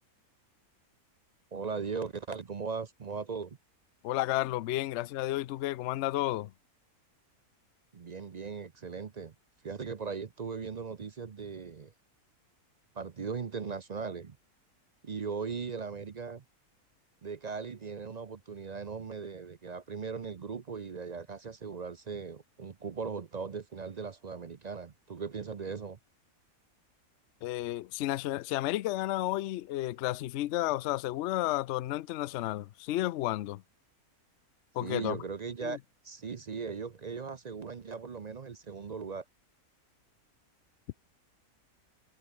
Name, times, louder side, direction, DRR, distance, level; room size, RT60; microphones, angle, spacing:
voice 1, 1.5-3.6 7.9-9.3 9.6-11.9 12.9-14.4 15.0-16.4 17.2-26.0 34.8-35.8 36.0-39.2, right 5 dB, 45° right, 0.6 m, -38 dB
voice 2, 4.0-6.5 27.4-33.6 34.7-35.2 35.6-35.8, left 16 dB, 65° left, 0.7 m, -32 dB
omnidirectional pair, 1.6 m